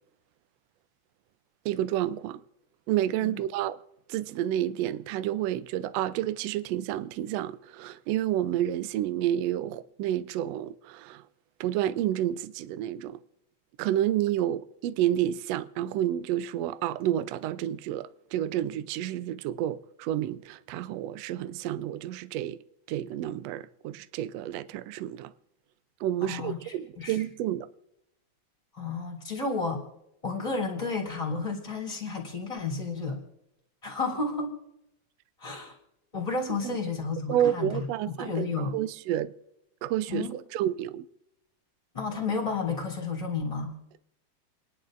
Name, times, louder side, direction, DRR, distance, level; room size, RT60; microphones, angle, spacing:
voice 1, 1.6-2.4 2.9-3.8 4.1-11.2 11.6-13.2 13.8-22.6 22.9-25.3 26.0-27.7 36.5-36.8 37.3-39.3 39.8-41.1, right 12 dB, 85° right, 1.4 m, -30 dB
voice 2, 26.2-26.6 27.0-27.2 28.7-29.8 30.2-33.2 33.8-34.5 35.4-35.7 36.1-37.8 38.2-38.8 40.1-40.3 41.9-43.8, left 4 dB, 10° left, 2.8 m, -31 dB
30.0 x 11.0 x 2.5 m
omnidirectional pair, 3.5 m